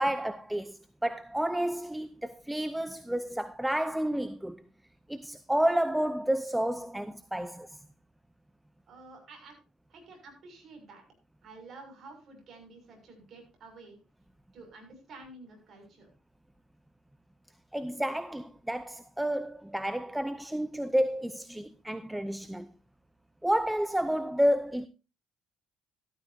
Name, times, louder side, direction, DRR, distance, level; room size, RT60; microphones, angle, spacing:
voice 1, 0.0-4.6 5.1-7.7 17.7-22.7 23.4-24.9, equal, 5° right, 0.6 m, -30 dB
voice 2, 8.9-9.6 9.9-11.0 11.4-14.0 14.5-16.1, right 3 dB, 50° right, 6.7 m, -50 dB
14.0 x 13.0 x 2.8 m
cardioid pair, 115°, 0 cm